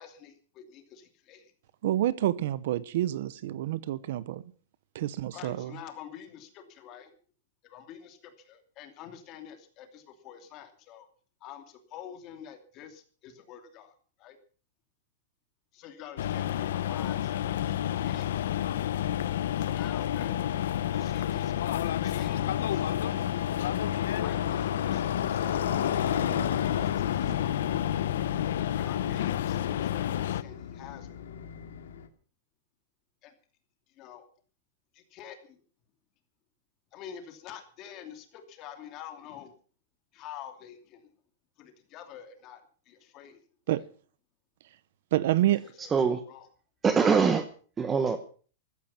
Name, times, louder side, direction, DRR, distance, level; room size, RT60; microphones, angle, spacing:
voice 1, 0.0-1.5 5.3-7.1 7.6-11.1 11.4-13.9 14.2-14.4 15.7-17.7 18.0-18.5 19.6-20.4 20.9-22.9 24.2-25.9 26.6-27.6 28.8-31.1 33.2-33.3 33.9-34.2 34.9-35.6 36.9-39.5 40.1-41.0 41.6-43.4 43.7-43.9 45.8-46.5 48.0-48.2, left 9 dB, 30° left, 2.8 m, -47 dB
voice 2, 1.8-4.4 4.9-5.7 43.7-43.8 45.1-45.6, right 13 dB, 55° right, 0.8 m, -28 dB
sound 1, 16.2-30.4, left 11 dB, 65° left, 0.9 m, -30 dB
Motorcycle, 20.6-32.1, left 8 dB, 85° left, 2.4 m, -36 dB
voice 3, 45.8-46.2 46.8-47.5 47.8-48.2, right 5 dB, 10° right, 0.9 m, -23 dB
15.0 x 14.0 x 5.8 m
supercardioid pair, 170°, 0 cm